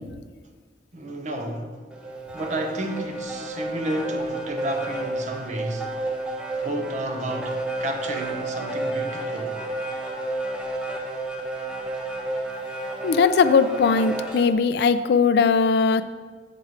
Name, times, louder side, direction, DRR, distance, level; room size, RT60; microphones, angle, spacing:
voice 1, 0.9-1.8 2.3-5.9 6.6-9.6, right 1 dB, 45° right, 0.8 m, -31 dB
sound 1, 1.9-14.5, right 2 dB, 5° right, 0.7 m, -31 dB
voice 2, 13.0-16.0, left 5 dB, 65° left, 0.3 m, -19 dB
7.7 x 4.4 x 4.7 m
head